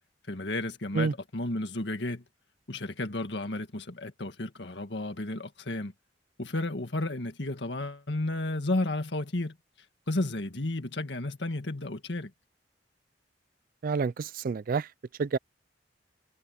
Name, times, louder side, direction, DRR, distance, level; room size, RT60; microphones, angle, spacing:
voice 1, 0.3-2.2 2.7-5.9 6.4-9.6 10.1-12.3, left 2 dB, 65° left, 1.9 m, -32 dB
voice 2, 13.8-14.9 15.2-15.4, right 5 dB, 50° right, 0.4 m, -28 dB
head